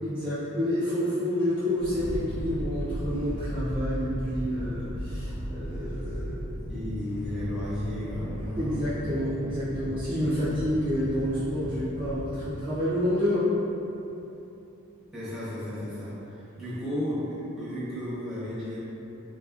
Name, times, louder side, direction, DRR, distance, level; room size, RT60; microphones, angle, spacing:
voice 1, 0.0-6.4 8.6-13.5, equal, 25° right, -13 dB, 0.5 m, -29 dB
sound 1, 1.8-12.4, equal, 40° left, 1.1 m, -36 dB
voice 2, 6.7-8.9 15.1-18.8, left 1 dB, ahead, -12 dB, 0.9 m, -33 dB
3.9 x 2.6 x 2.4 m, 2.9 s
head